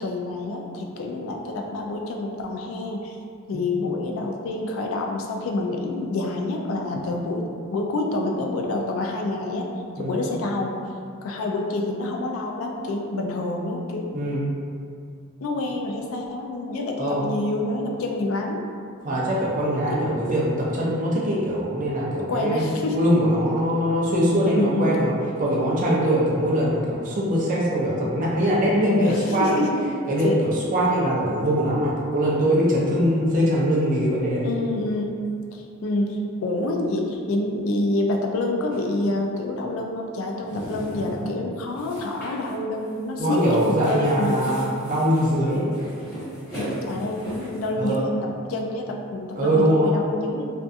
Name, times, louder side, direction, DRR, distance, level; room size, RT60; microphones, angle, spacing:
voice 1, 0.0-3.2 3.5-7.4 7.7-9.7 9.9-10.8 11.2-14.1 15.4-18.6 20.1-20.2 22.3-23.0 24.4-25.0 28.8-29.9 30.2-30.5 34.4-35.2 35.5-44.8 46.9-50.5, left 2 dB, 75° left, 1 dB, 0.3 m, -27 dB
voice 2, 14.1-14.4 17.0-17.3 19.0-22.6 22.9-25.1 25.4-29.6 30.1-34.5 43.2-45.7 47.8-48.1 49.3-50.0, equal, 35° right, -5 dB, 0.5 m, -22 dB
sound 1, 38.7-38.9 40.3-41.3 41.7-42.5 42.8-43.0 43.3-47.7, equal, 10° left, 0.9 m, -37 dB
2.6 x 2.4 x 2.4 m, 2.3 s
head